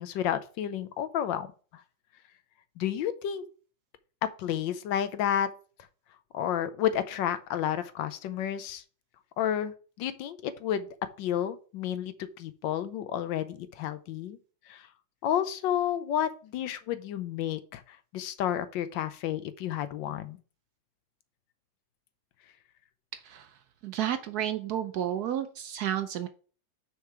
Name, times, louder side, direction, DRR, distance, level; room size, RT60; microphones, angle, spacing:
voice 1, 0.0-1.5 2.8-3.4 4.2-5.5 6.3-8.8 9.4-10.9 11.2-14.4 14.7-14.9 15.2-20.4, left 10 dB, 80° left, 12 dB, 1.4 m, -31 dB
voice 2, 23.1-23.5 23.8-26.3, right 10 dB, 70° right, 10 dB, 1.0 m, -31 dB
6.5 x 4.7 x 4.9 m, 0.39 s
omnidirectional pair, 2.0 m